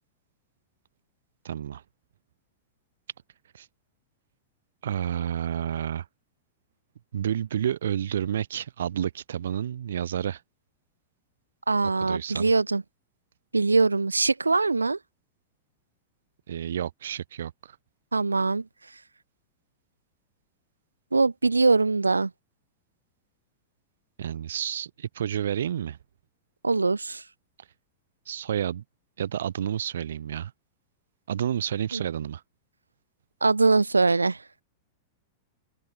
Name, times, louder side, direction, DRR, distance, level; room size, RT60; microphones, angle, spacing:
voice 1, 1.4-1.8 3.5-3.7 4.8-6.1 7.1-10.4 11.8-12.5 16.5-17.8 24.2-26.0 28.3-28.8 29.2-30.5 31.3-32.4, right 10 dB, 65° right, 0.8 m, -30 dB
voice 2, 11.7-12.8 13.5-15.0 18.1-18.7 21.1-22.3 26.6-27.2 31.9-32.0 33.4-34.4, right 3 dB, 85° right, 0.4 m, -22 dB
figure-of-eight pair, 95°, 0 cm